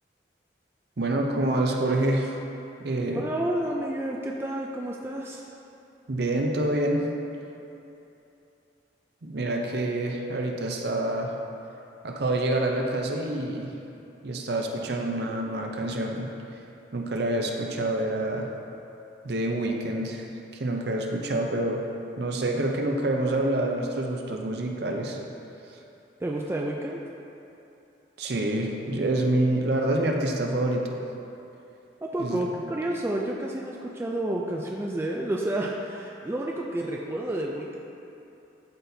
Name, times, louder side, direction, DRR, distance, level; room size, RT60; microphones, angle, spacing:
voice 1, 1.0-2.4 2.8-3.2 6.1-7.0 9.2-11.3 12.0-13.7 14.2-16.3 16.9-18.5 19.2-20.3 20.5-21.8 22.2-25.2 28.2-31.0 32.2-32.4, right 1 dB, 55° right, 1 dB, 0.6 m, -27 dB
voice 2, 3.1-5.5 26.2-27.0 32.0-37.8, right 1 dB, 15° right, -1 dB, 0.3 m, -30 dB
12.0 x 4.1 x 2.7 m, 2.8 s
head